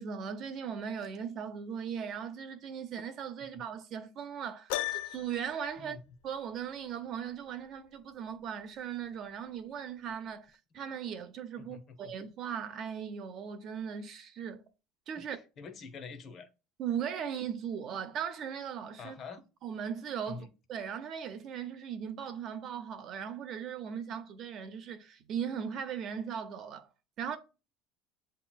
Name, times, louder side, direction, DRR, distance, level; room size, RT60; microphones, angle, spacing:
voice 1, 0.0-6.0 6.2-14.6 15.1-15.4 16.8-19.2 19.6-26.9 27.2-27.4, right 8 dB, 35° right, 0.6 m, -38 dB
Piano, 4.7-5.5, left 15 dB, 75° left, 0.4 m, -34 dB
voice 2, 11.6-12.1 15.2-15.3 15.6-16.5 19.0-19.4 20.3-20.5, left 5 dB, 30° left, 0.7 m, -46 dB
7.8 x 2.9 x 2.2 m
cardioid pair, 165°, 0 cm